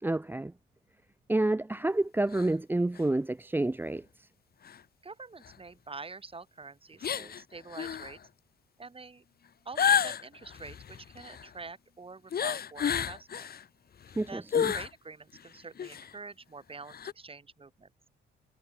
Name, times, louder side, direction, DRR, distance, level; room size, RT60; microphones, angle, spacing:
voice 1, 0.0-0.5 1.3-4.0 14.2-14.7, right 2 dB, 10° right, 0.9 m, -29 dB
sound 1, 2.3-2.5 3.0-3.1 4.7-4.8 5.5-5.6 7.0-7.4 7.7-8.1 9.8-11.5 12.3-13.6 14.0-14.9 15.4-15.5 15.8-16.1 16.9-17.1, left 8 dB, 50° left, 2.1 m, -31 dB
voice 2, 5.0-8.2 8.8-9.3 9.7-13.5 14.3-17.9, right 4 dB, 30° right, 6.9 m, -46 dB
cardioid pair, 90°, 20 cm